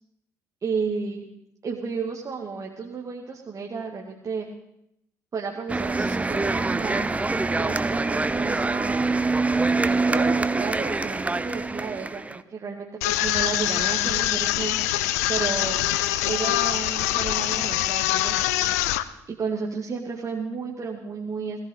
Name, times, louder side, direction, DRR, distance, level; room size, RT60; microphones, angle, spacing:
voice 1, 0.6-1.3 1.6-4.5 5.3-7.1 7.6-9.1 9.7-14.8 15.3-15.8 16.2-18.8 19.3-21.6, right 5 dB, 40° right, 0 dB, 2.1 m, -32 dB
sound 1, 5.7-12.4, right 3 dB, 15° right, 0.7 m, -25 dB
sound 2, 13.0-19.0, left 14 dB, 80° left, 0.6 m, -24 dB
17.5 x 17.0 x 4.0 m, 0.80 s
hypercardioid pair, 55°, 8 cm